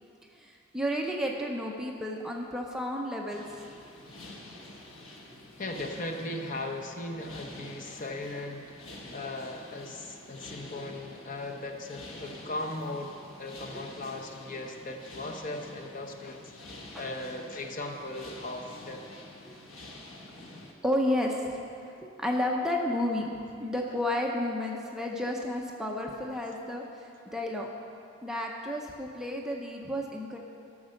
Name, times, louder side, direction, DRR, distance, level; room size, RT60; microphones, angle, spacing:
voice 1, 0.3-3.6 13.7-13.8 16.9-17.1 20.8-23.3 23.6-27.7 28.2-30.4, left 1 dB, 5° right, -1 dB, 0.6 m, -32 dB
sound 1, 3.3-20.7, left 1 dB, 75° left, 1.3 m, -48 dB
voice 2, 5.6-8.8 9.1-16.6 16.9-19.0, left 2 dB, 40° left, 3 dB, 0.8 m, -38 dB
13.0 x 6.1 x 6.4 m, 2.6 s
head